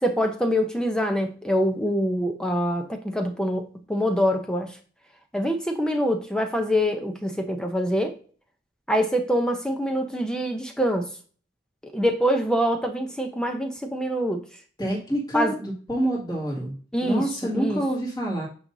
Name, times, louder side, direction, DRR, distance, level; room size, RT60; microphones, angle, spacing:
voice 1, 0.0-4.8 5.3-8.2 8.9-11.1 11.8-14.4 15.3-15.5 16.9-17.3 17.5-17.8, equal, 5° left, 4 dB, 0.6 m, -25 dB
voice 2, 14.8-16.8 17.0-18.5, right 1 dB, 20° left, -3 dB, 2.1 m, -27 dB
9.0 x 5.3 x 2.7 m, 0.41 s
head